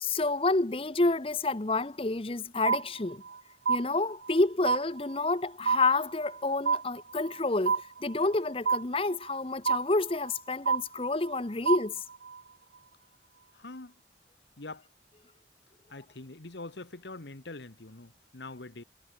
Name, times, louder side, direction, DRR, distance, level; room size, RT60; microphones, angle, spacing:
voice 1, 0.0-3.2 3.7-12.0, left 2 dB, 30° left, 0.8 m, -29 dB
sound 1, 2.7-3.4 3.7-4.4 4.7-5.4 5.7-6.4 6.7-7.4 7.7-8.4 8.7-9.4 9.7-10.4 10.7-11.4 11.7-12.4, right 5 dB, 85° right, 0.8 m, -29 dB
voice 2, 13.5-13.9 14.6-14.9 15.9-18.8, left 2 dB, 70° left, 1.4 m, -44 dB
head